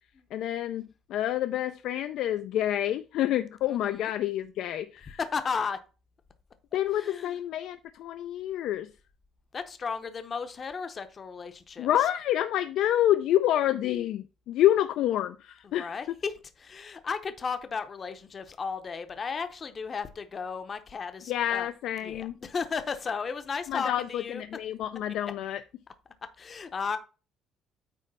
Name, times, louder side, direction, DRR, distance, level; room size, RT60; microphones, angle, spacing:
voice 1, 0.3-5.2 6.7-8.9 11.8-15.9 21.3-22.3 23.7-25.6, left 12 dB, 65° left, 0.4 m, -28 dB
voice 2, 3.7-4.1 5.2-5.8 6.9-7.4 9.5-11.9 15.6-21.7 22.0-24.4 26.4-27.0, left 5 dB, 25° left, 0.7 m, -34 dB
8.9 x 3.2 x 5.4 m
cardioid pair, 170°, 0 cm